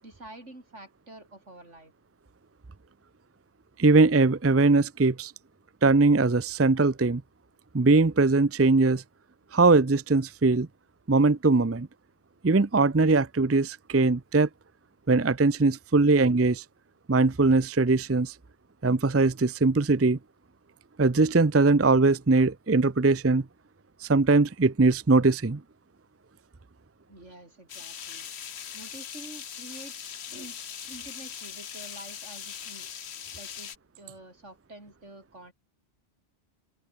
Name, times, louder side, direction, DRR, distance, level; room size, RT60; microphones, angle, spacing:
voice 1, 0.0-1.9 27.1-28.3 28.7-30.0 30.3-30.6 30.8-32.9 33.4-35.5, right 1 dB, 75° right, 7.3 m, -47 dB
voice 2, 3.8-5.3 5.8-7.2 7.7-9.0 9.5-10.7 11.1-11.9 12.4-14.5 15.1-16.6 17.1-18.3 18.8-20.2 21.0-23.4 24.0-25.6, right 3 dB, 15° right, 0.5 m, -21 dB
sound 1, 27.7-33.8, left 8 dB, 65° left, 1.2 m, -40 dB
open air
omnidirectional pair, 1.2 m